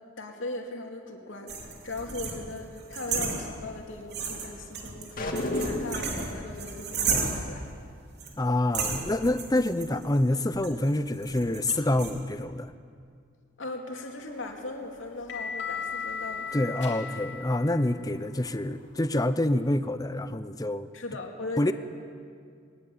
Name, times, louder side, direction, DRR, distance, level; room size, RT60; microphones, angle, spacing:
voice 1, 0.2-7.6 13.6-17.0 20.9-21.7, left 2 dB, 90° left, 1 dB, 2.6 m, -39 dB
sound 1, 1.5-3.8 4.1-7.6 8.2-8.4 8.7-12.1, right 4 dB, 60° right, 3.2 m, -33 dB
sound 2, 5.2-6.2, left 1 dB, 45° left, 2.4 m, -30 dB
voice 2, 8.4-12.7 16.5-20.9 21.6-21.7, left 1 dB, 20° left, 12 dB, 0.7 m, -27 dB
sound 3, 14.2-19.0, left 6 dB, 60° left, 2.8 m, -38 dB
20.5 x 20.0 x 8.6 m, 2.2 s
head